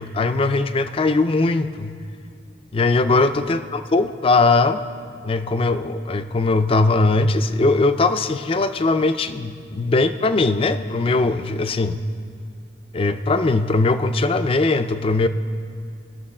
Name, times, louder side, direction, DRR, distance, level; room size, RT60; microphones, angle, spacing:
voice 1, 0.0-2.0 2.7-4.8 5.2-12.0 12.9-15.3, left 3 dB, 30° left, 10 dB, 0.4 m, -20 dB
18.5 x 6.8 x 4.3 m, 2.2 s
head